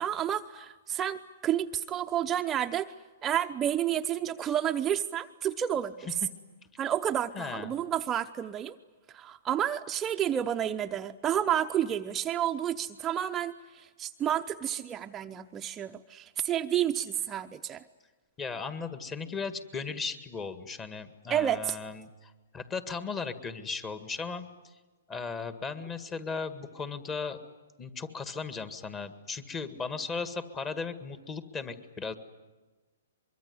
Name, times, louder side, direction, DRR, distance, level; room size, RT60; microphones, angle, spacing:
voice 1, 0.0-2.9 3.2-5.9 6.8-8.8 9.1-17.8 21.3-21.8, right 10 dB, 20° right, 5 dB, 0.8 m, -30 dB
voice 2, 7.3-7.7 18.4-24.7 25.1-27.4 27.8-32.1, left 5 dB, 20° left, 11 dB, 1.9 m, -37 dB
24.0 x 23.5 x 9.7 m, 1.3 s
hypercardioid pair, 135°, 0 cm